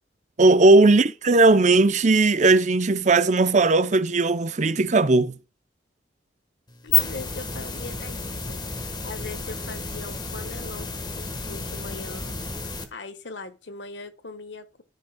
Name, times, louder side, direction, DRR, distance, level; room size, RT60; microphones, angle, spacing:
voice 1, 0.4-5.3, right 3 dB, 40° right, 0.6 m, -17 dB
sound 1, 6.7-12.8, left 4 dB, 25° left, 1.3 m, -30 dB
voice 2, 6.8-8.6 9.0-10.9 11.2-12.4 12.9-14.8, left 3 dB, 80° left, 1.3 m, -39 dB
14.0 x 5.3 x 2.2 m
head